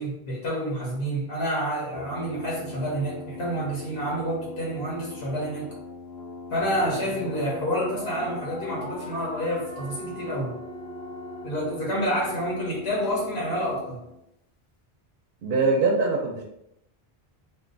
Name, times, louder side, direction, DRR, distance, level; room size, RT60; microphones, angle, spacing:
voice 1, 0.0-5.7 6.5-10.5 11.4-14.0, equal, 80° left, -3 dB, 1.1 m, -28 dB
Brass instrument, 1.9-14.2, left 3 dB, 50° left, 0.6 m, -42 dB
sound 1, 6.6-13.1, left 1 dB, 10° left, 0.4 m, -40 dB
voice 2, 15.4-16.4, right 3 dB, 70° right, 0 dB, 0.7 m, -22 dB
2.6 x 2.2 x 3.8 m, 0.81 s
omnidirectional pair, 1.0 m